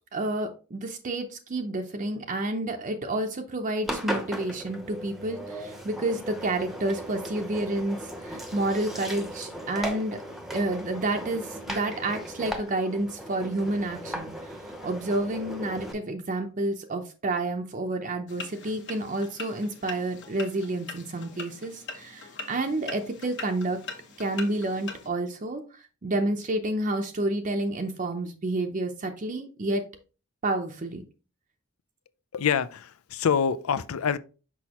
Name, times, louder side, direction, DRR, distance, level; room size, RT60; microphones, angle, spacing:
voice 1, 0.1-10.2 10.5-23.8 24.2-29.9 30.4-31.0, right 2 dB, 40° right, 0.6 m, -30 dB
Engine, 3.8-15.9, equal, ahead, 0.8 m, -37 dB
sound 1, 18.3-25.1, left 4 dB, 60° left, 1.3 m, -42 dB
voice 2, 32.3-34.2, left 7 dB, 85° left, 0.5 m, -26 dB
6.2 x 5.6 x 2.9 m
head